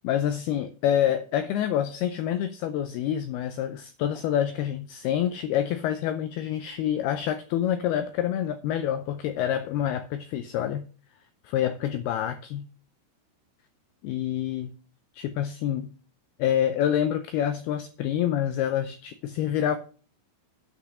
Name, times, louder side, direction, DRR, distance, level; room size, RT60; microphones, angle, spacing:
voice 1, 0.0-10.8 11.4-12.7 14.0-14.7 15.1-15.9 16.4-19.8, left 10 dB, 90° left, 2.2 m, -27 dB
8.2 x 6.1 x 6.2 m
omnidirectional pair, 5.4 m